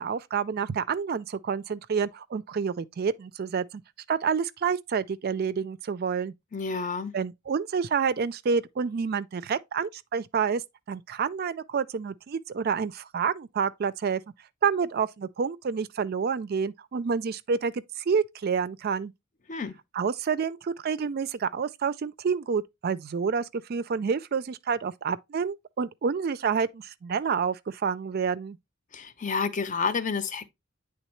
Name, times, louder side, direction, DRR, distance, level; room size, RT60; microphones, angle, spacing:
voice 1, 0.0-3.6 4.1-6.3 7.1-10.6 10.9-14.2 14.6-19.1 19.9-28.6, right 6 dB, 50° right, 0.4 m, -28 dB
voice 2, 6.5-7.1 19.5-19.7 28.9-30.5, left 5 dB, 40° left, 0.7 m, -29 dB
9.1 x 3.5 x 3.1 m
head